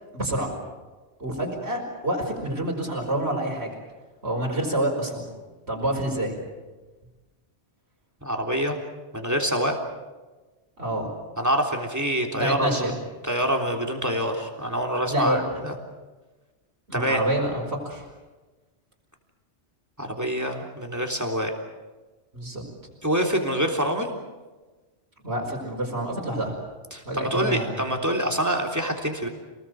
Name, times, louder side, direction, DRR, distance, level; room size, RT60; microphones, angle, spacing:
voice 1, 0.1-0.5 1.2-3.7 4.2-5.3 5.7-6.4 10.8-11.1 12.4-12.9 15.1-15.6 16.9-18.0 22.3-22.6 25.2-26.6 27.1-27.8, right 1 dB, 65° right, -1 dB, 5.2 m, -27 dB
voice 2, 8.2-8.8 9.1-9.8 11.4-12.9 13.2-15.7 16.9-17.2 20.0-21.5 23.0-24.2 26.9-29.3, equal, 15° right, 3 dB, 3.5 m, -26 dB
28.5 x 19.5 x 7.8 m, 1.2 s
omnidirectional pair, 1.2 m